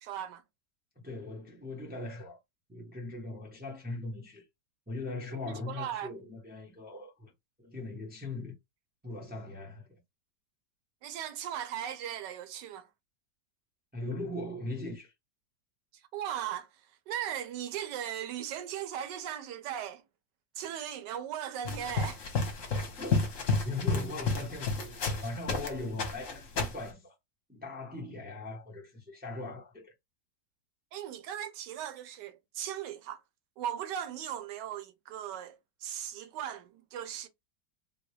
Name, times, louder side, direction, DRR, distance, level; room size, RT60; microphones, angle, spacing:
voice 1, 0.0-0.4 5.3-6.1 11.0-12.9 16.1-16.7 17.1-20.0 20.6-22.2 30.9-33.2 33.6-37.3, right 10 dB, 75° right, 1.2 m, -38 dB
voice 2, 1.0-2.4 2.7-4.4 4.9-7.3 7.6-8.5 9.0-10.0 13.9-15.1 22.5-22.6 23.0-23.3 23.6-27.1 27.5-29.9, left 2 dB, 15° right, 0.4 m, -40 dB
sound 1, 21.6-25.7 26.0-26.9, left 4 dB, 55° left, 1.1 m, -31 dB
3.7 x 2.1 x 3.1 m
omnidirectional pair, 2.0 m